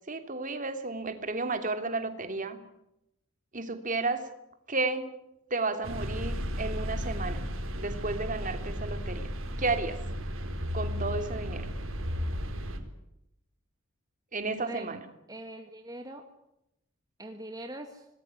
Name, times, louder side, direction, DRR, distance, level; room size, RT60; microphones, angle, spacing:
voice 1, 0.1-2.6 3.5-4.3 4.7-5.1 5.5-7.4 7.8-9.3 9.6-10.0 10.7-11.7 14.3-15.0, right 3 dB, 40° right, 8 dB, 3.1 m, -32 dB
sound 1, 5.8-12.8, equal, 70° right, 4.3 m, -34 dB
voice 2, 14.6-15.0 15.3-16.2 17.2-18.1, right 1 dB, 20° right, 4 dB, 2.0 m, -42 dB
26.5 x 20.0 x 9.7 m, 0.83 s
head